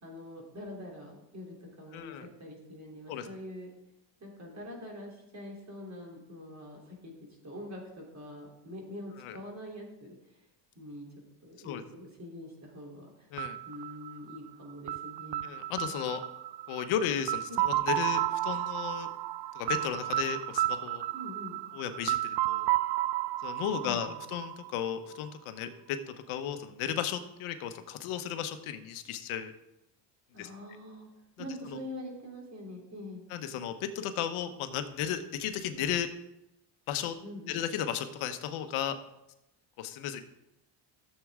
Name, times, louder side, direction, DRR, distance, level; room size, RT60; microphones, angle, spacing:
voice 1, 0.0-3.7 4.2-7.1 7.4-10.4 10.8-13.3 13.7-15.5 17.5-17.6 21.1-21.6 23.8-24.2 30.3-31.1 31.4-33.2 37.2-37.6, left 1 dB, 35° right, -1 dB, 3.4 m, -44 dB
voice 2, 1.9-2.2 3.1-3.3 9.2-9.4 11.6-11.8 13.3-13.6 15.4-16.2 16.7-19.1 19.5-21.0 21.7-22.7 23.4-29.5 30.4-30.5 31.4-31.5 33.3-36.1 36.9-37.2 37.5-39.0 39.8-40.2, left 9 dB, 80° left, 8 dB, 1.1 m, -34 dB
sound 1, 13.4-25.2, right 15 dB, 60° right, 0.5 m, -32 dB
14.0 x 7.5 x 3.7 m, 0.90 s
cardioid pair, 120°, 49 cm